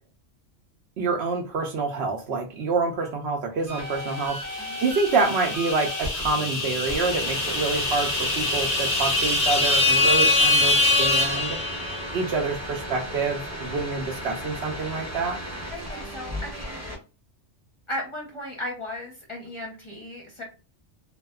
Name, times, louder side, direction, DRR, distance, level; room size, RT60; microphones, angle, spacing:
voice 1, 1.0-11.6 12.1-15.4, right 4 dB, 65° right, 2 dB, 0.8 m, -27 dB
sound 1, 3.7-17.0, equal, 15° right, 0.6 m, -35 dB
sound 2, 4.2-12.2, left 2 dB, 65° left, 0.4 m, -24 dB
voice 2, 4.6-4.9 15.7-16.8 17.9-20.4, left 1 dB, 30° left, -2 dB, 0.7 m, -36 dB
2.5 x 2.1 x 2.3 m, 0.33 s
omnidirectional pair, 1.2 m